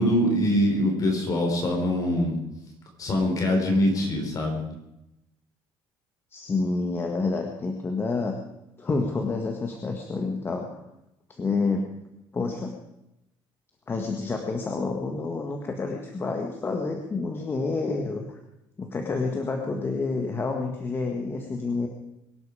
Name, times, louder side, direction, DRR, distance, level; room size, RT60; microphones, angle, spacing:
voice 1, 0.0-2.4 3.0-4.6, left 1 dB, 40° left, 2 dB, 4.9 m, -23 dB
voice 2, 6.3-8.3 8.8-10.8 11.4-11.9 12.3-12.7 13.9-18.4 18.8-21.9, left 3 dB, 25° left, 3 dB, 1.7 m, -28 dB
23.0 x 12.0 x 5.0 m, 0.89 s
cardioid pair, 150°, 9 cm